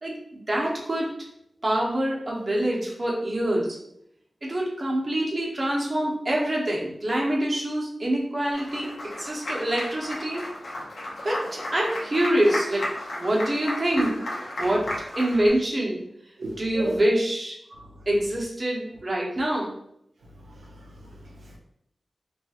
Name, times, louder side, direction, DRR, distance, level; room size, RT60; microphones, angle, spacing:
voice 1, 0.0-1.1 1.6-3.8 4.4-8.9 9.2-10.4 11.2-12.9 13.2-14.2 14.6-14.9 15.1-16.0 16.6-17.6 18.1-19.7, right 1 dB, 35° right, -3 dB, 0.8 m, -25 dB
Applause, 8.5-15.5, left 1 dB, 80° left, 0.7 m, -34 dB
voice 2, 16.4-17.0 17.7-17.8 20.5-21.6, right 3 dB, 85° right, -1 dB, 0.4 m, -37 dB
2.9 x 2.4 x 2.8 m, 0.75 s
wide cardioid pair, 65°, 0 cm